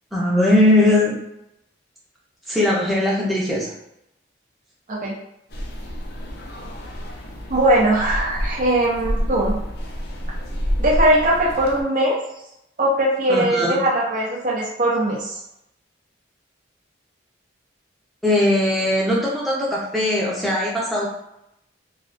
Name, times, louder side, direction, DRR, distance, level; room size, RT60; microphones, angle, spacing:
voice 1, 0.1-1.2 2.5-3.7 13.3-13.7 18.2-21.1, left 1 dB, ahead, -6 dB, 0.7 m, -19 dB
sound 1, 5.5-11.8, equal, 55° left, 0.5 m, -28 dB
voice 2, 7.5-9.6 10.8-12.2 12.8-15.4, right 1 dB, 40° right, -4 dB, 0.6 m, -20 dB
3.1 x 2.4 x 2.5 m, 0.81 s
head